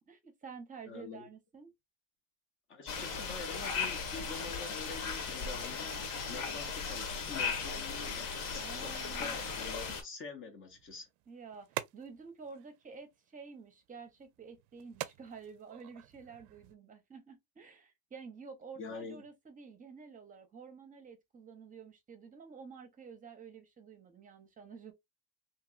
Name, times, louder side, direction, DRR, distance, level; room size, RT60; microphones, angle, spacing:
voice 1, 0.1-1.7 8.6-9.5 11.3-24.9, right 5 dB, 20° right, 0.7 m, -50 dB
voice 2, 0.9-1.3 2.7-6.0 6.3-8.3 8.7-11.1 18.8-19.2, left 4 dB, 35° left, 0.6 m, -46 dB
sound 1, 2.9-10.0, left 5 dB, 60° left, 1.1 m, -37 dB
sound 2, 10.7-16.7, right 14 dB, 60° right, 0.5 m, -47 dB
2.9 x 2.7 x 2.4 m
cardioid pair, 135°, 36 cm